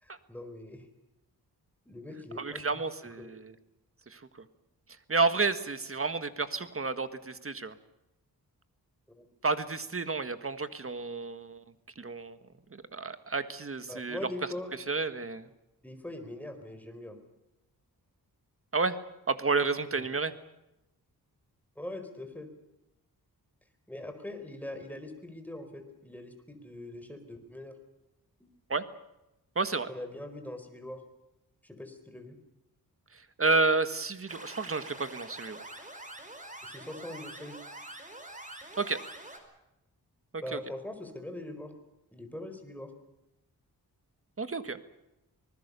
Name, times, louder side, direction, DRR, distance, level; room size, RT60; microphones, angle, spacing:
voice 1, 0.0-0.9 1.8-2.8 3.2-3.3 9.2-9.3 13.9-14.7 15.8-17.2 19.9-20.1 21.8-22.5 23.9-27.7 28.4-28.5 29.9-31.0 31.6-32.4 36.6-37.6 40.4-41.7 42.1-42.9, left 1 dB, 5° left, 6 dB, 4.7 m, -42 dB
voice 2, 2.4-3.5 4.1-4.4 5.1-7.7 9.4-11.6 11.9-12.4 12.7-14.2 14.9-15.5 18.7-19.0 19.3-20.3 28.7-28.8 29.5-29.9 33.1-35.7 38.8-39.0 40.3-40.6 44.4-44.8, right 3 dB, 35° right, 11 dB, 1.7 m, -31 dB
sound 1, 34.3-39.4, right 1 dB, 20° right, 5.0 m, -45 dB
25.5 x 20.0 x 6.9 m, 0.91 s
wide cardioid pair, 90°, 38 cm